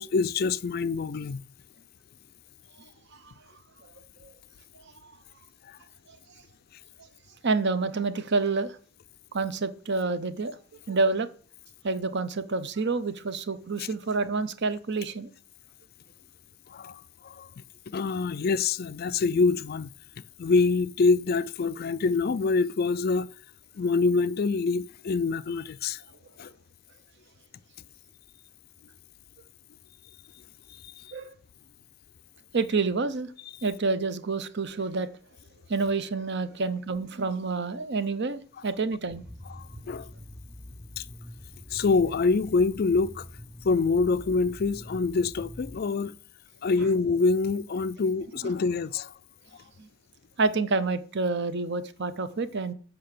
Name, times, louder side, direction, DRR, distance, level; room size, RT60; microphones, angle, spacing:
voice 1, 0.0-1.4 5.6-5.8 16.7-17.5 17.9-19.9 20.4-23.3 23.8-26.0 26.4-26.5 31.0-31.1 39.5-40.1 41.0-41.1 41.7-43.3 43.6-46.2 46.6-49.1, left 4 dB, 45° left, 0.4 m, -25 dB
voice 2, 7.4-8.8 9.3-10.6 10.9-11.3 11.8-15.3 31.1-31.3 32.5-33.3 33.6-35.1 35.7-39.2 48.4-48.5 49.8-49.9 50.4-52.7, right 3 dB, 55° right, 0.8 m, -28 dB
sound 1, 39.1-45.8, equal, 5° right, 0.6 m, -45 dB
7.7 x 5.9 x 6.6 m
head